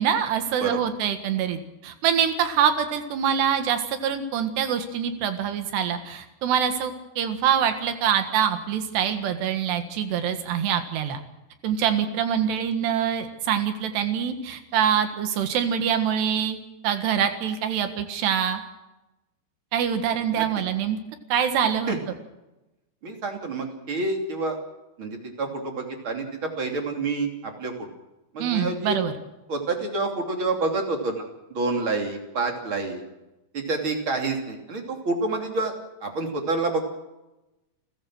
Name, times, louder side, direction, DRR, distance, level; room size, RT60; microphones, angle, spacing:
voice 1, 0.0-11.2 11.6-16.6 16.8-18.6 19.7-21.0 21.3-21.9 28.4-29.1, right 8 dB, 85° right, 8 dB, 3.8 m, -25 dB
voice 2, 23.0-24.6 25.0-27.9 28.3-29.0 29.5-31.2 31.5-33.0 33.5-35.7 36.0-37.0, right 3 dB, 35° right, 3 dB, 3.3 m, -28 dB
30.0 x 14.5 x 6.3 m, 0.99 s
omnidirectional pair, 4.7 m